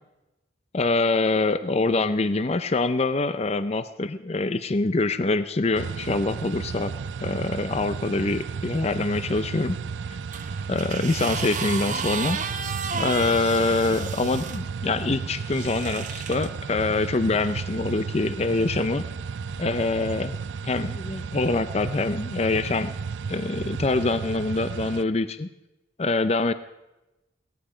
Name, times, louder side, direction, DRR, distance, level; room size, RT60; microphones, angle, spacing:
voice 1, 0.7-6.9 7.2-9.8 10.7-12.4 12.9-19.0 19.6-20.4 20.6-22.9 23.3-25.5 26.0-26.5, left 3 dB, 35° left, 12 dB, 0.5 m, -25 dB
sound 1, 5.7-25.0, right 5 dB, 75° right, 0.4 m, -34 dB
sound 2, 10.3-14.6 15.5-16.5 17.4-17.6, right 6 dB, 40° right, 1.1 m, -33 dB
18.5 x 14.5 x 5.0 m, 0.99 s
head